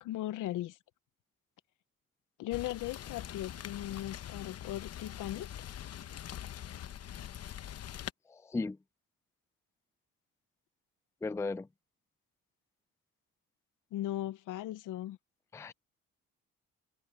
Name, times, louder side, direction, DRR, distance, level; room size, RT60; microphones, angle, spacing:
voice 1, 0.0-0.8 2.4-5.5 13.9-15.2, left 14 dB, 85° left, 0.8 m, -38 dB
Rain, 2.5-8.1, left 10 dB, 55° left, 0.9 m, -43 dB
voice 2, 8.3-8.8 11.2-11.7 15.5-15.7, left 3 dB, 10° left, 0.4 m, -36 dB
cardioid pair, 90°, 30 cm